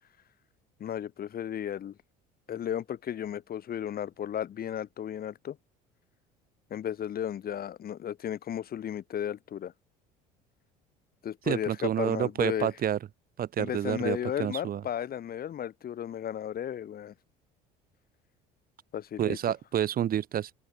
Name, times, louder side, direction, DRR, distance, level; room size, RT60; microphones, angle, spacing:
voice 1, 0.8-1.9 2.5-5.6 6.7-9.7 11.2-12.7 13.6-17.1 18.9-19.4, left 10 dB, 50° left, 2.8 m, -34 dB
voice 2, 11.5-13.0 13.4-14.8 19.2-20.5, right 10 dB, 45° right, 1.4 m, -29 dB
hypercardioid pair, 75°, 20 cm